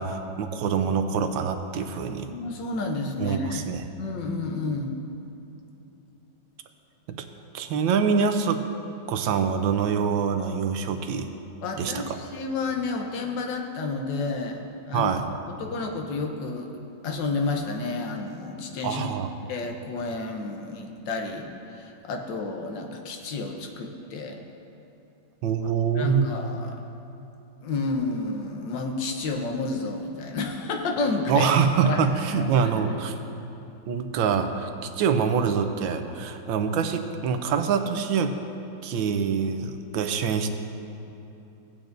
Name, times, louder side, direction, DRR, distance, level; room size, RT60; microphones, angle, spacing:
voice 1, 0.0-2.3 3.2-3.8 7.1-7.2 7.5-8.6 9.1-11.3 11.8-12.1 14.9-15.2 18.8-19.3 25.4-26.3 31.3-33.1 33.9-34.7 35.0-38.3 38.8-40.5, right 6 dB, 90° right, 7 dB, 1.4 m, -25 dB
voice 2, 2.1-5.0 11.6-15.1 15.5-16.7 17.0-19.1 19.5-24.4 26.0-26.8 27.6-31.5 31.8-32.0 32.3-33.0, left 3 dB, 70° left, 3 dB, 1.5 m, -31 dB
17.0 x 8.6 x 2.6 m, 2.9 s
omnidirectional pair, 2.1 m